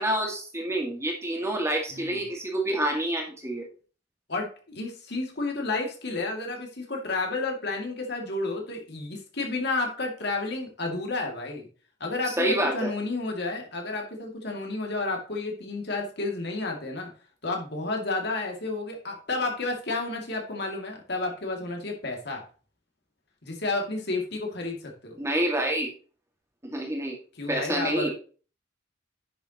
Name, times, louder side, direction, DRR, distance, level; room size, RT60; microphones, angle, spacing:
voice 1, 0.0-3.6 12.4-12.9 25.2-25.9 26.6-27.2 27.5-28.1, right 1 dB, 15° right, 1 dB, 2.0 m, -27 dB
voice 2, 1.9-2.2 4.3-11.7 12.0-17.1 17.4-22.4 23.4-25.2 27.4-28.1, left 3 dB, 60° left, 1 dB, 2.5 m, -31 dB
10.5 x 7.1 x 3.0 m, 0.37 s
head